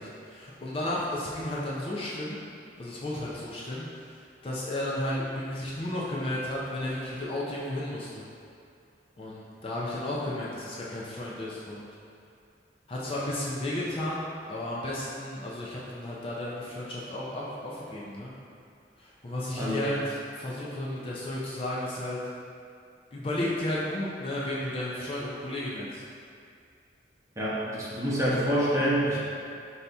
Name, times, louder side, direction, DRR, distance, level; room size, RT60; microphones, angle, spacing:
voice 1, 0.0-2.4 2.8-3.9 4.4-8.2 9.2-11.9 12.9-18.3 19.0-22.2 23.1-26.0, left 1 dB, 30° left, -6 dB, 0.5 m, -33 dB
voice 2, 27.4-29.2, equal, 15° right, -9 dB, 1.0 m, -26 dB
5.6 x 2.7 x 3.4 m, 2.4 s
head